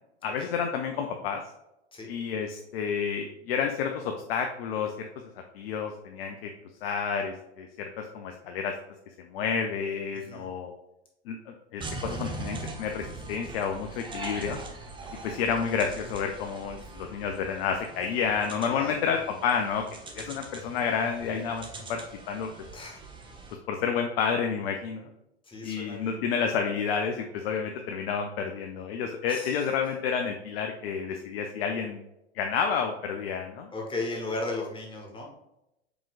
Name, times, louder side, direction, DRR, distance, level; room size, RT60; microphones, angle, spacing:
voice 1, 0.2-1.4 2.1-5.1 5.5-6.5 6.8-8.7 9.3-10.7 11.3-14.6 15.2-19.8 20.1-22.0 22.3-22.5 23.7-25.0 25.6-32.0 32.3-33.7, left 6 dB, 60° left, 4 dB, 0.6 m, -30 dB
voice 2, 10.1-10.5 16.8-16.9 18.7-19.0 22.7-23.0 25.5-26.2 29.3-29.6 33.7-35.3, left 2 dB, 15° left, 0 dB, 1.1 m, -36 dB
sound 1, 11.8-23.5, right 3 dB, 15° right, 0.8 m, -42 dB
4.9 x 3.6 x 2.4 m, 0.88 s
figure-of-eight pair, 90°, 34 cm